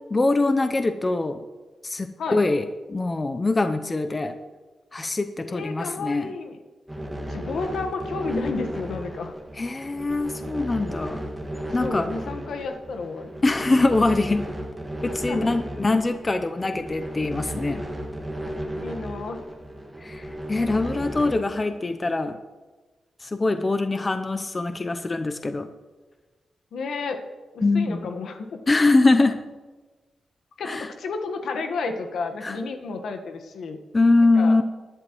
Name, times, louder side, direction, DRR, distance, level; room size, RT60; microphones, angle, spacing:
voice 1, 0.1-1.4 1.8-4.3 4.9-6.3 9.6-11.2 11.7-12.1 13.4-14.4 15.0-17.8 20.0-22.4 23.2-25.7 27.6-28.0 28.7-29.4 30.7-30.9 32.4-32.6 33.9-34.6, left 2 dB, 25° left, 8 dB, 0.6 m, -23 dB
voice 2, 5.5-6.6 7.2-9.3 11.8-13.3 15.3-15.5 18.7-19.4 26.7-27.2 27.5-28.6 30.6-33.8 34.3-34.6, left 4 dB, 80° left, 4 dB, 1.3 m, -31 dB
sound 1, 6.9-21.4, equal, 10° right, 1.8 m, -34 dB
20.0 x 11.0 x 3.1 m, 1.3 s
wide cardioid pair, 110°, 0 cm